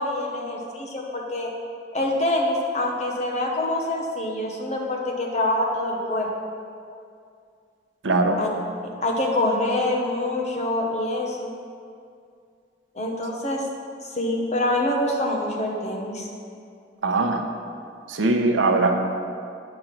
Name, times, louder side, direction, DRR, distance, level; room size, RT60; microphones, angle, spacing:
voice 1, 0.0-1.5 1.9-6.3 8.4-8.5 9.0-11.5 12.9-13.6 14.0-16.3, left 1 dB, 35° left, 0 dB, 1.0 m, -25 dB
voice 2, 8.0-8.4 17.0-17.4 18.1-18.9, right 3 dB, 90° right, 4 dB, 0.8 m, -20 dB
7.8 x 5.3 x 6.0 m, 2.3 s
head